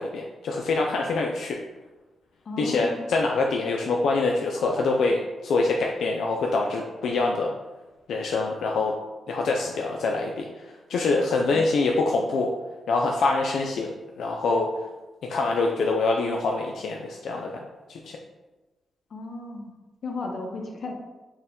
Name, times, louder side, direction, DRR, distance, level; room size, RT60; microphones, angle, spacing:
voice 1, 0.0-1.6 2.6-7.5 8.1-8.9 9.3-12.5 12.9-13.9 14.2-14.7 15.3-17.6 17.9-18.0, left 3 dB, 80° left, 0 dB, 0.3 m, -25 dB
voice 2, 2.5-3.0 11.5-11.7 19.1-19.7 20.0-20.9, left 2 dB, 55° left, 2 dB, 0.7 m, -34 dB
4.3 x 2.2 x 3.6 m, 1.2 s
cardioid pair, 90°, 0 cm